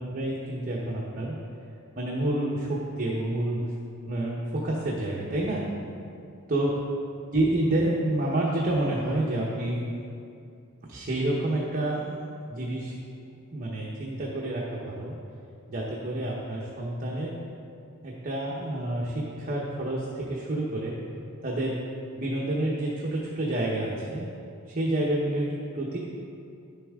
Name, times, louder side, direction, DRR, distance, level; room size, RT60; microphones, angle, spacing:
voice 1, 0.0-1.3 2.0-3.7 4.1-5.7 6.5-6.8 7.3-9.8 10.9-12.2 12.5-12.9 13.5-15.1 15.7-17.4 18.0-21.0 21.4-21.9 22.2-24.3 24.7-26.0, right 1 dB, 40° right, -4 dB, 0.9 m, -28 dB
10.5 x 6.9 x 3.6 m, 2.5 s
head